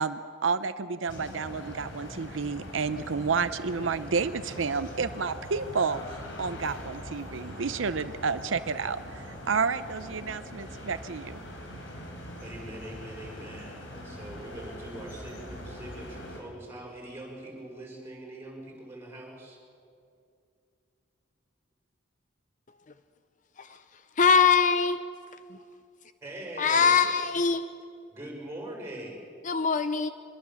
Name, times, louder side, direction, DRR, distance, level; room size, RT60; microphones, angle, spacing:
voice 1, 0.0-11.4, right 5 dB, 80° right, 0.7 m, -30 dB
sound 1, 1.1-16.4, left 1 dB, 80° left, 4.8 m, -42 dB
voice 2, 12.4-19.6 26.2-27.1 28.1-29.3, right 1 dB, 15° right, 6.0 m, -42 dB
voice 3, 24.2-25.0 26.6-27.6 29.5-30.1, left 6 dB, 40° left, 0.6 m, -22 dB
24.0 x 22.0 x 7.1 m
head